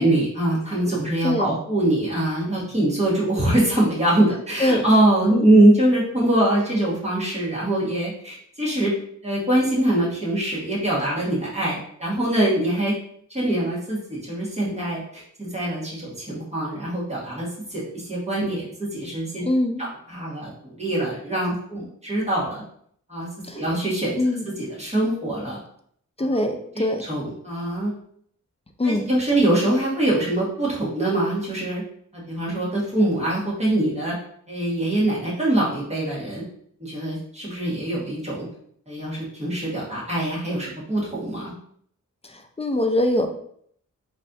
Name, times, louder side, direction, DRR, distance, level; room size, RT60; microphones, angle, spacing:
voice 1, 0.0-8.9 9.2-12.9 13.3-19.4 19.8-22.6 23.1-23.3 23.5-24.2 24.5-25.6 26.8-27.9 28.8-31.8 32.1-34.2 34.5-36.4 36.8-38.5 38.9-41.5, right 1 dB, 20° right, -7 dB, 1.6 m, -23 dB
voice 2, 19.4-19.8 23.5-23.6 24.2-24.4 26.2-27.0 28.8-29.1 42.3-43.3, left 1 dB, 20° left, 5 dB, 0.4 m, -23 dB
4.1 x 3.2 x 2.7 m, 0.65 s
wide cardioid pair, 105°, 31 cm